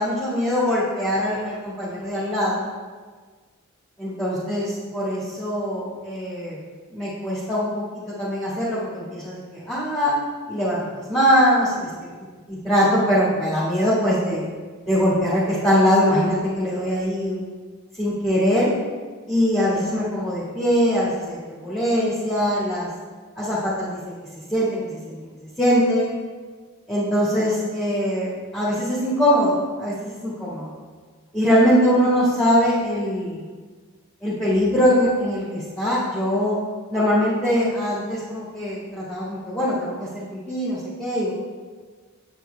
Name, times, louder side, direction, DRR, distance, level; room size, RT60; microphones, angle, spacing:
voice 1, 0.0-2.6 4.0-6.6 6.9-10.2 10.5-11.9 12.5-14.4 14.8-17.4 18.0-18.7 19.3-22.9 23.3-24.1 24.5-25.3 25.6-26.1 26.9-30.7 31.3-33.4 34.2-36.6 36.9-41.3, equal, ahead, -10 dB, 1.8 m, -22 dB
9.1 x 8.1 x 3.4 m, 1.5 s
head